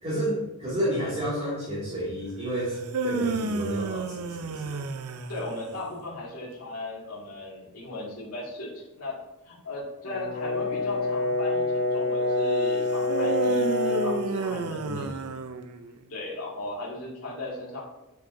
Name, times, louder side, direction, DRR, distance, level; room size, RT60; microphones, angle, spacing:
voice 1, 0.0-2.8 3.0-4.8 14.5-15.1, right 1 dB, 30° right, -7 dB, 2.3 m, -31 dB
sound 1, 2.7-5.9 13.1-16.0, right 4 dB, 80° right, 0.6 m, -31 dB
voice 2, 5.3-9.2 9.5-15.2 16.1-17.8, left 2 dB, 75° left, -5 dB, 2.3 m, -37 dB
Brass instrument, 10.0-14.3, left 3 dB, 50° left, 1.4 m, -26 dB
8.3 x 6.4 x 2.7 m, 1.0 s
head